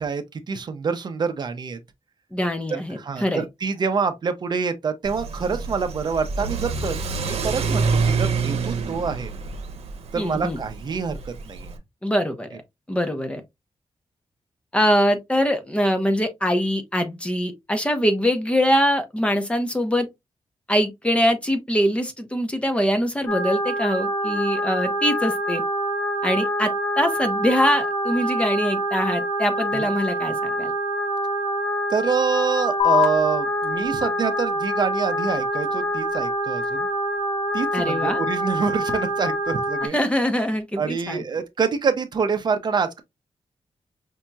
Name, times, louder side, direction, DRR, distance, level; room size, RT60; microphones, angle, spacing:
voice 1, 0.0-1.8 2.7-9.3 10.1-11.8 29.7-29.9 31.9-36.9 37.5-40.0 40.8-43.0, right 5 dB, 45° right, 0.6 m, -26 dB
voice 2, 2.3-3.4 10.1-10.6 12.0-12.6 12.9-13.4 14.7-20.1 20.7-25.6 26.2-30.7 37.7-38.2 39.9-41.2, equal, 10° left, 0.7 m, -23 dB
Car / Accelerating revving vroom, 5.0-11.8, right 4 dB, 85° right, 0.8 m, -27 dB
sound 1, 23.3-39.9, right 1 dB, 30° left, 1.0 m, -26 dB
sound 2, 32.8-39.8, left 12 dB, 65° left, 1.4 m, -31 dB
5.3 x 2.8 x 2.3 m
wide cardioid pair, 155°, 10 cm